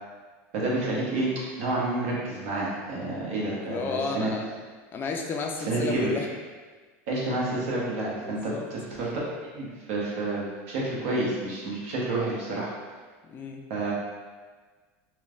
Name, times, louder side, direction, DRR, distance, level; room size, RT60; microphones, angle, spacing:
voice 1, 0.5-1.3 1.6-4.3 5.7-6.3 7.1-9.1 9.5-12.7 13.7-13.9, right 2 dB, 75° right, -5 dB, 0.9 m, -29 dB
voice 2, 3.6-4.5 4.9-6.3 8.2-8.7 13.3-13.6, left 4 dB, 30° left, 2 dB, 0.3 m, -32 dB
3.1 x 2.1 x 2.3 m, 1.4 s
supercardioid pair, 120°, 7 cm